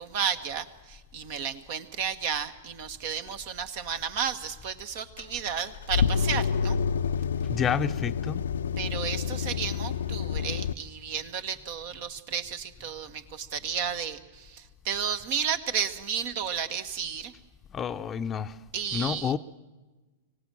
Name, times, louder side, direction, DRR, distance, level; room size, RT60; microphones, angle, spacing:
voice 1, 0.0-6.8 8.8-17.3 18.7-19.3, right 7 dB, 55° right, 11 dB, 1.5 m, -32 dB
sound 1, 5.2-10.7, left 7 dB, 75° left, 0.6 m, -28 dB
voice 2, 7.5-8.4 17.7-18.6 18.9-19.4, left 7 dB, 25° left, 10 dB, 0.7 m, -29 dB
24.5 x 17.5 x 7.6 m, 1.2 s
figure-of-eight pair, 105°, 0 cm